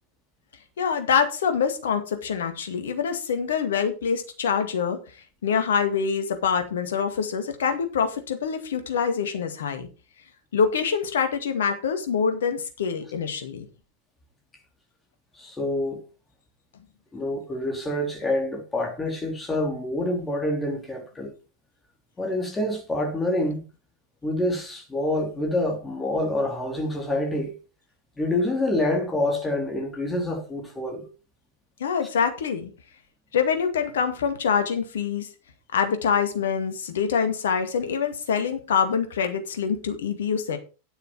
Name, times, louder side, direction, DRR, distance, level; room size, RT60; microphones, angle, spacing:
voice 1, 0.8-5.0 5.4-9.9 10.5-13.7 31.8-32.7 33.3-35.3 35.7-40.6, left 6 dB, 60° left, 2.0 m, -25 dB
voice 2, 15.4-16.0 17.1-21.3 22.2-23.6 24.2-27.5 28.2-31.1, left 1 dB, 10° left, 3.4 m, -27 dB
9.9 x 7.9 x 4.6 m
figure-of-eight pair, 90°, 0 cm